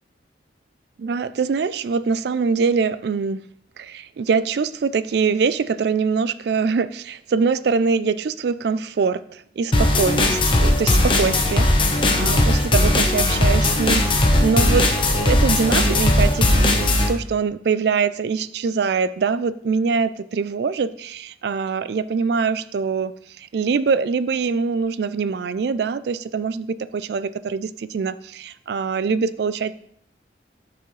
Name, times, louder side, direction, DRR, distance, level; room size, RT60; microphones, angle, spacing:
voice 1, 1.0-3.4 3.8-29.7, right 5 dB, 65° right, 15 dB, 0.3 m, -23 dB
sound 1, 9.7-17.1, left 1 dB, 30° left, 1.0 m, -18 dB
11.5 x 6.9 x 3.2 m, 0.67 s
head